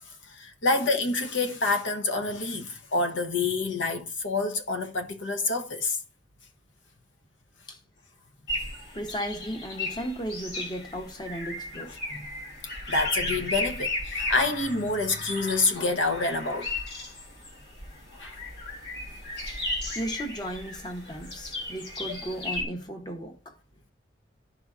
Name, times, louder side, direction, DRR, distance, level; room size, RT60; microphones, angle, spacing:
voice 1, 0.1-6.0 11.9-12.3 12.9-16.7 18.1-18.4, left 3 dB, 85° left, 0.9 m, -27 dB
sound 1, 8.5-22.6, left 2 dB, 60° left, 1.4 m, -35 dB
voice 2, 8.9-11.9 19.9-23.6, right 1 dB, 20° left, 0.8 m, -35 dB
12.0 x 4.2 x 2.4 m
head